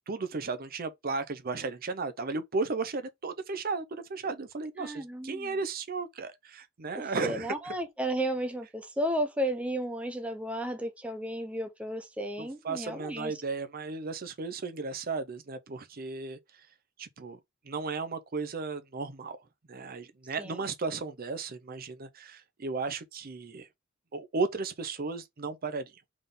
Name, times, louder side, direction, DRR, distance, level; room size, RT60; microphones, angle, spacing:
voice 1, 0.1-7.7 12.4-16.4 17.0-17.4 17.7-19.4 19.7-23.7 24.1-25.9, right 4 dB, 50° right, 0.7 m, -35 dB
voice 2, 4.8-5.5 7.2-13.3 20.4-20.6, right 1 dB, 5° right, 0.5 m, -33 dB
3.9 x 3.6 x 3.7 m
head